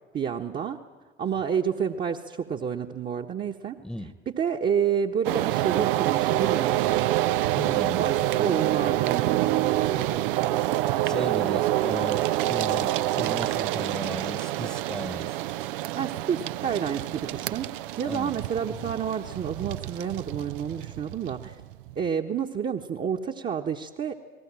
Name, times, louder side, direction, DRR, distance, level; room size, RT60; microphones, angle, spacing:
voice 1, 0.1-0.8 1.2-3.8 4.3-7.1 8.0-10.3 15.9-17.7 18.0-21.5 21.9-24.1, right 7 dB, 30° right, 1 dB, 1.4 m, -29 dB
voice 2, 3.8-4.1 7.5-8.2 11.0-15.4 18.0-18.4 18.7-18.9, left 1 dB, ahead, 13 dB, 1.3 m, -36 dB
sound 1, 5.2-22.1, right 15 dB, 60° right, 0.7 m, -27 dB
29.5 x 20.5 x 7.7 m, 1.3 s
figure-of-eight pair, 65°, 30 cm